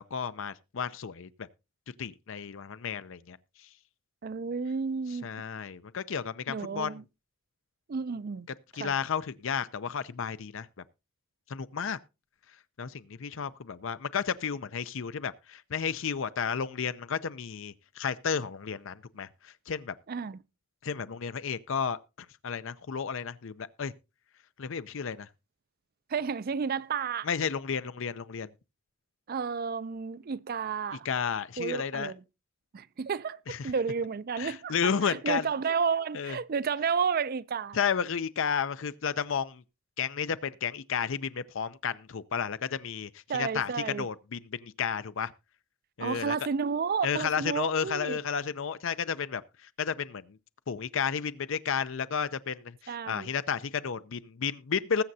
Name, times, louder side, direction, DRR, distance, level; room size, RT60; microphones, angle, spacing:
voice 1, 0.0-1.5 2.0-3.4 5.2-7.0 8.7-10.7 11.5-12.0 12.8-19.9 20.8-22.0 22.4-23.9 24.6-25.3 27.2-28.5 31.0-32.1 33.5-33.7 34.4-35.5 36.1-36.4 37.7-39.6 40.0-45.3 46.0-46.4 47.0-50.4 50.7-55.0, left 6 dB, 65° left, 0.5 m, -32 dB
voice 2, 4.2-5.3 6.5-7.0 7.9-8.5 8.8-8.9 20.1-20.4 26.1-27.3 29.3-31.1 31.6-32.2 32.7-37.8 43.3-44.1 46.0-48.2 52.9-53.3, right 6 dB, 45° right, 0.4 m, -31 dB
20.0 x 7.6 x 2.7 m
head